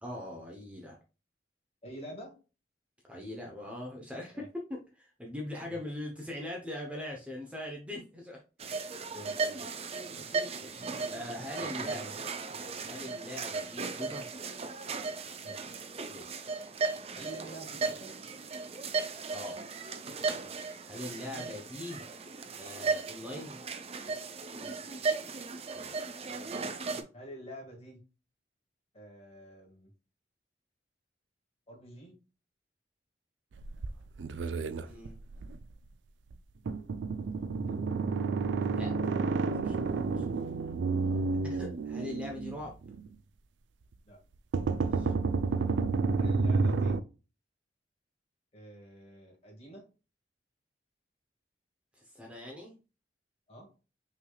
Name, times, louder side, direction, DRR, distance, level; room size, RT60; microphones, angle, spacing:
voice 1, 0.0-1.0 3.1-8.4 10.1-12.0 12.5-14.4 16.1-16.5 19.3-19.6 20.9-22.1 22.6-23.6 25.7-26.5 34.6-35.2 37.6-38.0 38.7-38.9 39.4-40.2 41.4-42.7 44.9-45.1 52.0-52.8, left 1 dB, 5° right, 0 dB, 0.8 m, -42 dB
voice 2, 1.8-2.3 4.3-4.5 5.7-5.8 9.1-9.6 11.7-12.1 15.4-15.6 17.1-18.2 20.3-20.5 24.6-24.8 27.1-28.0 28.9-29.9 31.7-32.1 41.1-41.2 44.1-44.2 46.2-47.0 48.5-49.9 53.5-53.7, right 1 dB, 35° left, 0 dB, 1.7 m, -48 dB
sound 1, 8.6-27.0, right 4 dB, 35° right, 0.5 m, -36 dB
sound 2, 33.5-35.6 36.3-36.4 36.7-43.1 44.5-47.0, right 4 dB, 85° right, 0.4 m, -30 dB
5.7 x 3.3 x 2.3 m, 0.32 s
head